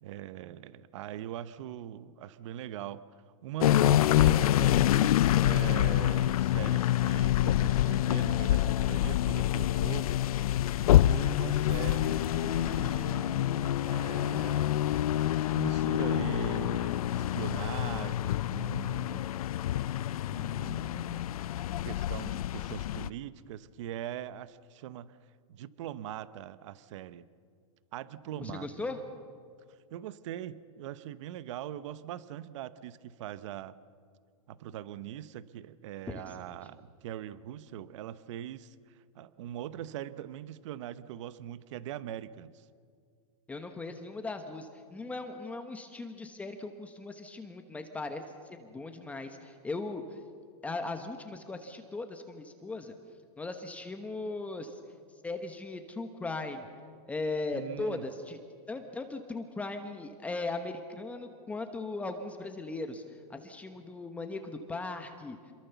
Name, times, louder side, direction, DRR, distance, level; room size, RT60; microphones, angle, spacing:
voice 1, 0.0-3.1 3.4-10.1 10.9-14.7 15.5-19.3 20.3-21.2 21.8-25.2 25.5-27.3 27.9-28.7 29.9-33.8 34.5-42.7 57.5-58.0, right 11 dB, 55° right, 15 dB, 0.9 m, -41 dB
sound 1, 3.6-23.1, left 13 dB, 75° left, 0.6 m, -27 dB
voice 2, 28.4-29.0 36.1-36.5 43.5-50.2 50.6-52.9 53.4-54.8 55.2-56.7 57.1-58.4 58.7-65.5, left 3 dB, 5° left, 6 dB, 1.1 m, -38 dB
27.5 x 22.5 x 7.0 m, 2.1 s
supercardioid pair, 155°, 19 cm